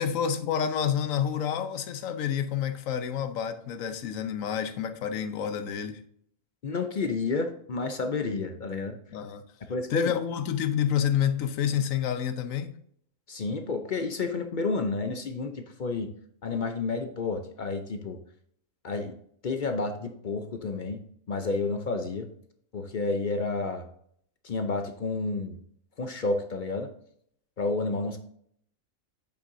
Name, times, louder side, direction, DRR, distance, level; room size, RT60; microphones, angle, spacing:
voice 1, 0.0-6.0 9.1-9.4 9.9-12.7, left 8 dB, 75° left, 1.1 m, -28 dB
voice 2, 6.6-9.0 9.7-10.1 13.3-16.1 16.4-18.2 18.8-19.1 19.4-21.0 21.3-22.3 22.7-23.8 24.4-25.6 26.0-26.9 27.6-28.2, left 3 dB, 50° left, 0.6 m, -30 dB
8.1 x 6.7 x 2.6 m
omnidirectional pair, 1.4 m